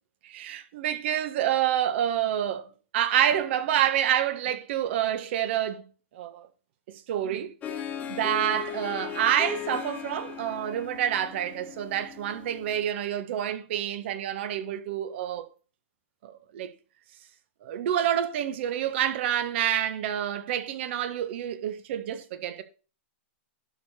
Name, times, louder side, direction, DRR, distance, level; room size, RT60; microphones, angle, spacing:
voice 1, 0.2-5.8 6.1-6.5 6.9-7.5 8.1-15.5 16.2-16.7 17.6-22.6, right 10 dB, 55° right, 1.5 m, -28 dB
Harp, 7.6-12.8, left 9 dB, 20° left, 1.3 m, -37 dB
11.5 x 5.1 x 4.4 m
hypercardioid pair, 140°, 7 cm